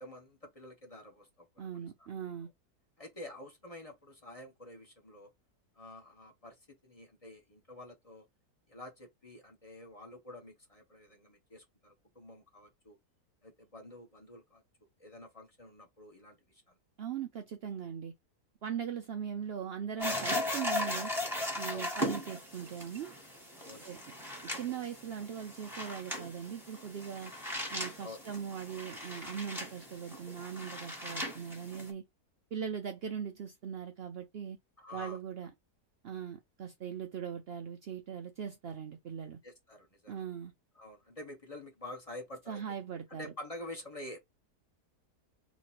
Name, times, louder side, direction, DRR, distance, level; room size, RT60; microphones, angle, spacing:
voice 1, 0.0-1.9 3.0-5.3 5.8-6.6 6.8-8.2 8.7-13.0 13.4-14.6 15.0-16.8 21.7-21.9 23.5-24.2 28.0-28.2 34.8-35.2 39.4-40.3 40.7-42.6 43.1-44.2, left 1 dB, 25° left, 1.0 m, -48 dB
voice 2, 1.6-2.5 17.0-18.1 18.6-21.1 21.6-23.1 23.8-24.0 24.4-27.3 27.7-32.0 32.5-34.6 34.9-35.5 36.0-39.4 40.1-40.5 42.5-43.3, right 8 dB, 90° right, 0.5 m, -40 dB
sound 1, 20.0-31.9, left 1 dB, ahead, 1.3 m, -38 dB
3.2 x 3.0 x 4.3 m
omnidirectional pair, 1.7 m